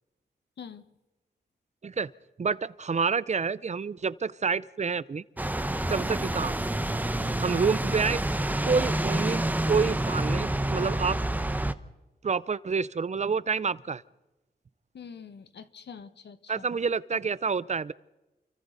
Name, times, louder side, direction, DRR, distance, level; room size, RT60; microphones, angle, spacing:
voice 1, 0.6-0.9 14.9-16.6, left 6 dB, 90° left, 11 dB, 1.3 m, -45 dB
voice 2, 2.4-5.2 5.9-6.6 7.4-8.2 8.6-11.2 12.2-14.0 16.5-17.9, right 5 dB, 40° right, 18 dB, 0.6 m, -28 dB
sound 1, 5.4-11.7, right 1 dB, 10° right, 1.0 m, -28 dB
29.5 x 23.5 x 4.1 m, 1.1 s
wide cardioid pair, 90°, 17 cm